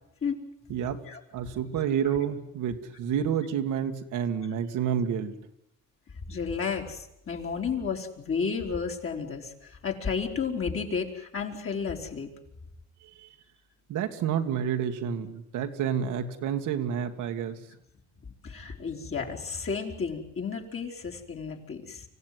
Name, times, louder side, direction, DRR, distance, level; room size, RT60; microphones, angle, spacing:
voice 1, 0.7-1.0 1.3-5.3 13.9-17.6, right 8 dB, 85° right, 6 dB, 2.1 m, -29 dB
voice 2, 6.3-12.3 18.4-22.0, left 5 dB, 45° left, 1 dB, 4.1 m, -32 dB
25.0 x 16.0 x 9.4 m, 0.82 s
cardioid pair, 90°, 30 cm